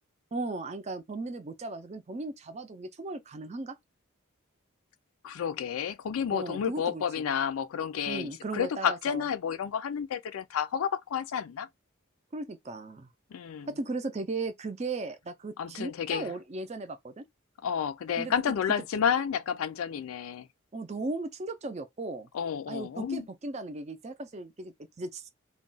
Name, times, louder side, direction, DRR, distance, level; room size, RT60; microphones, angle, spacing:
voice 1, 0.3-3.7 6.3-7.3 8.1-9.2 12.3-13.1 13.7-17.2 18.2-18.4 20.7-22.3 22.7-25.3, right 2 dB, 30° right, 0.4 m, -37 dB
voice 2, 5.2-11.7 13.3-13.7 15.6-16.3 17.6-20.5 22.3-23.3, left 8 dB, 80° left, 0.4 m, -31 dB
2.3 x 2.2 x 3.8 m
head